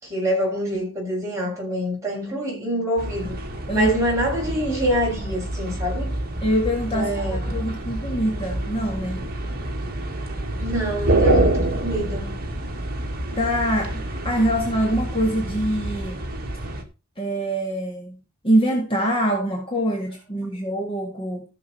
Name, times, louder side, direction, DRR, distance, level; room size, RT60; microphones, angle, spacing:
voice 1, 0.0-3.4 3.7-6.1 6.9-7.6 10.6-12.3, equal, 15° right, 6.6 m, -25 dB
sound 1, 3.0-16.8, right 1 dB, 45° right, 2.0 m, -27 dB
voice 2, 3.7-4.0 6.4-7.1 7.5-9.3 13.4-16.2 17.2-18.2 18.4-21.4, equal, 25° left, 2.0 m, -24 dB
15.0 x 6.7 x 4.3 m
head